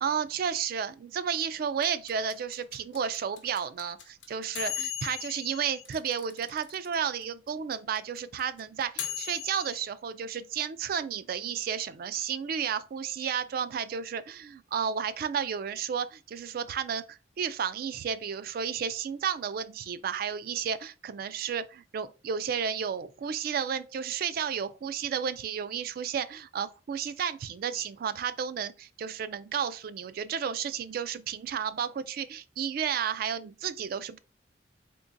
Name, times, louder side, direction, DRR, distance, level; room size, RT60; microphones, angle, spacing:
voice 1, 0.0-34.2, right 7 dB, 55° right, 0.3 m, -32 dB
sound 1, 1.8-6.9 7.2-7.3 7.5-9.8, left 10 dB, 75° left, 0.8 m, -37 dB
3.7 x 2.9 x 2.5 m
head